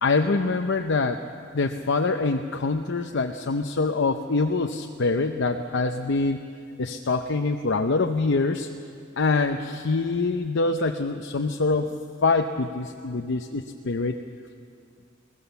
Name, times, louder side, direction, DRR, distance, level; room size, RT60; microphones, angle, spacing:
voice 1, 0.0-1.2 1.5-6.4 6.8-8.7 9.2-12.0 12.2-14.2, left 3 dB, 65° left, 5 dB, 0.7 m, -25 dB
21.5 x 17.5 x 7.0 m, 2.4 s
head